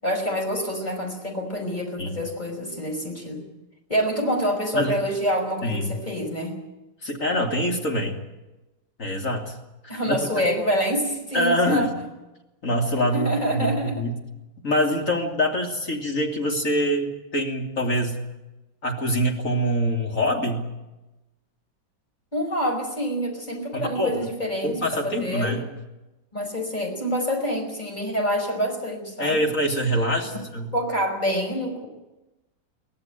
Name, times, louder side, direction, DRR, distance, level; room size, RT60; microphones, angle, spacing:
voice 1, 0.0-3.5 3.9-6.6 9.9-11.9 13.1-13.9 22.3-24.8 25.0-25.6 26.3-29.4 30.7-31.9, equal, 20° left, 2 dB, 5.5 m, -26 dB
voice 2, 5.6-6.0 7.0-8.2 9.0-9.6 10.1-10.2 11.3-11.9 12.6-14.2 14.6-18.2 18.8-20.7 23.7-24.2 24.6-25.6 29.2-30.7, equal, 40° left, 1 dB, 3.4 m, -24 dB
24.0 x 17.0 x 9.2 m, 1.0 s
omnidirectional pair, 2.0 m